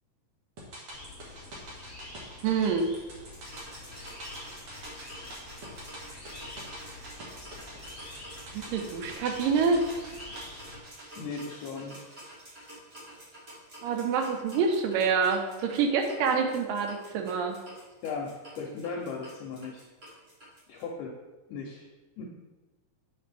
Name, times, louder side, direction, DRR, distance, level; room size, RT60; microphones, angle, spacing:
sound 1, 0.6-12.9 13.2-13.3, right 1 dB, 50° right, 2.0 m, -47 dB
sound 2, 0.9-10.8, left 2 dB, 35° left, 1.1 m, -47 dB
voice 1, 2.4-2.9 8.5-9.8 13.8-17.6, right 5 dB, 80° right, 4 dB, 2.4 m, -26 dB
sound 3, 3.3-20.8, equal, 35° right, 3.0 m, -48 dB
voice 2, 11.2-12.1 18.0-19.8 20.7-21.1 21.5-21.8 22.2-22.3, left 4 dB, 75° left, 0 dB, 2.0 m, -37 dB
7.8 x 6.0 x 3.4 m, 1.2 s
omnidirectional pair, 4.0 m